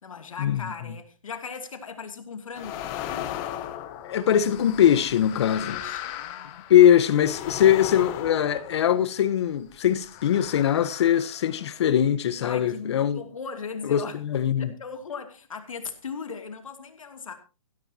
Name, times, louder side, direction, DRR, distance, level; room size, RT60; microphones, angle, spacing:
voice 1, 0.0-3.3 5.5-6.9 12.4-14.2 14.6-17.3, left 5 dB, 75° left, 2.8 m, -38 dB
sound 1, 2.5-9.3 10.0-11.8, left 12 dB, 25° left, 1.3 m, -37 dB
voice 2, 4.0-5.8 6.7-13.2 13.8-14.7, left 10 dB, 55° left, 1.2 m, -21 dB
16.0 x 14.0 x 2.9 m
hypercardioid pair, 145°, 17 cm